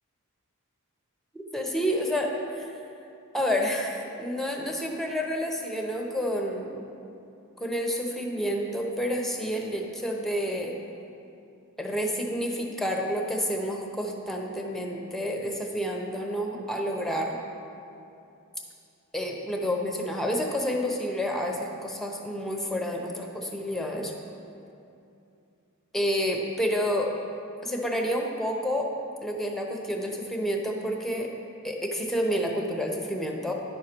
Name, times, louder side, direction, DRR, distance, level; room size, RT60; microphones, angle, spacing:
voice 1, 1.3-2.7 3.3-6.9 7.6-10.7 11.8-17.4 19.1-24.1 25.9-27.1 27.6-28.9 29.2-31.3 31.6-33.5, equal, ahead, 1 dB, 0.8 m, -29 dB
10.5 x 6.3 x 4.5 m, 2.7 s
head